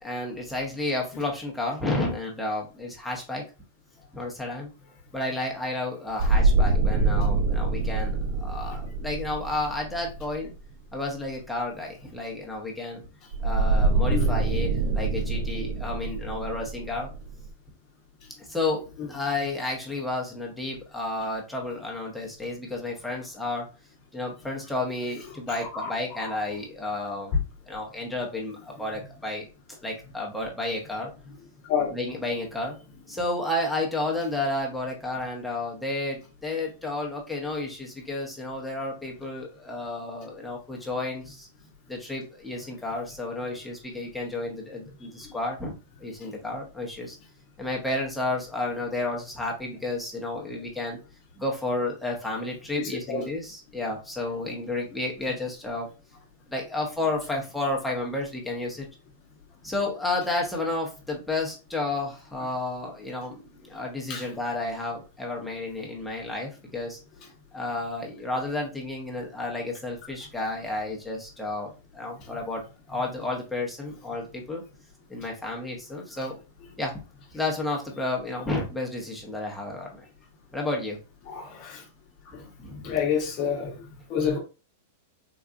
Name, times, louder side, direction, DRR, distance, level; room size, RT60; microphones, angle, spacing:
voice 1, 0.0-3.4 4.1-4.7 5.1-10.5 10.9-13.0 13.4-17.1 18.4-23.7 24.1-27.3 27.7-31.1 31.9-32.8 33.1-41.5 41.9-47.2 47.6-51.0 51.4-55.9 56.5-58.9 59.6-67.0 67.5-74.6 75.1-76.4 76.8-77.0 77.3-80.0 80.5-81.0 82.3-83.0, left 2 dB, 5° left, 0.9 m, -31 dB
sound 1, 6.2-10.6 13.3-17.5, right 3 dB, 55° right, 0.3 m, -25 dB
voice 2, 25.5-25.9 26.2-26.4 27.3-27.4 31.6-31.9 45.2-45.3 52.8-53.3 64.1-64.3 67.2-67.3 72.3-72.4 81.2-81.8 82.3-82.5 82.8-84.4, left 7 dB, 45° left, 0.9 m, -29 dB
3.9 x 2.3 x 2.4 m
hypercardioid pair, 115°, 0 cm